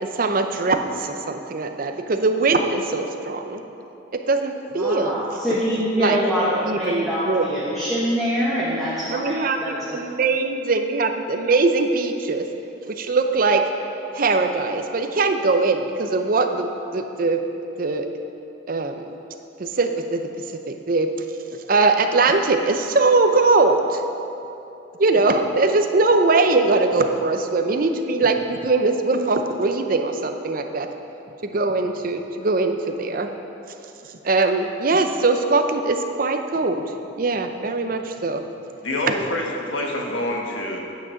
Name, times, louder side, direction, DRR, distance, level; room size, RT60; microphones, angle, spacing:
voice 1, 0.0-3.6 4.1-5.2 6.0-6.2 6.7-7.6 9.1-12.5 12.9-13.6 14.1-17.4 17.8-18.1 18.7-19.1 19.6-20.2 20.7-21.1 21.7-24.0 25.0-30.9 31.4-33.3 34.2-36.8 37.2-38.4, right 3 dB, 45° right, 6 dB, 0.6 m, -21 dB
voice 2, 4.8-9.3 9.6-10.0, equal, ahead, -9 dB, 1.2 m, -24 dB
voice 3, 38.8-40.8, left 1 dB, 90° left, 0 dB, 1.3 m, -26 dB
9.5 x 6.1 x 6.4 m, 2.9 s
head